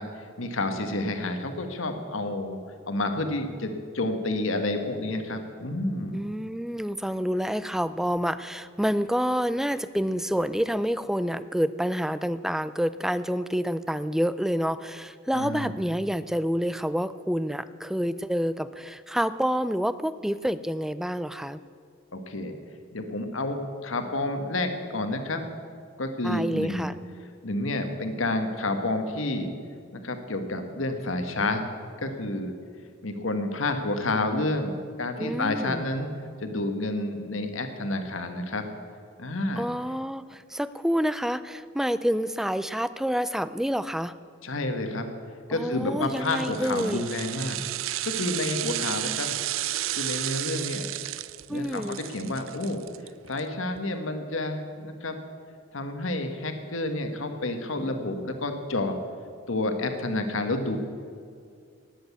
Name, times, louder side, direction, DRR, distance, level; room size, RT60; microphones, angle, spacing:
voice 1, 0.0-2.6 2.9-6.2 15.3-15.8 22.1-22.5 22.9-25.4 26.0-26.9 27.4-29.5 29.9-31.6 32.0-32.5 33.0-36.1 36.4-38.6 39.2-39.7 44.4-45.1 45.5-47.6 48.0-49.3 50.0-50.9 51.5-52.8 53.3-55.2 55.7-58.9 59.5-60.8, left 2 dB, 80° left, 6 dB, 1.4 m, -29 dB
voice 2, 6.1-21.6 26.2-26.9 35.2-35.8 39.6-44.2 45.5-47.0 51.5-52.0, equal, ahead, 15 dB, 0.4 m, -28 dB
sound 1, 46.1-53.4 53.7-53.8, right 14 dB, 80° right, 0.5 m, -32 dB
19.0 x 7.9 x 8.3 m, 2.2 s
head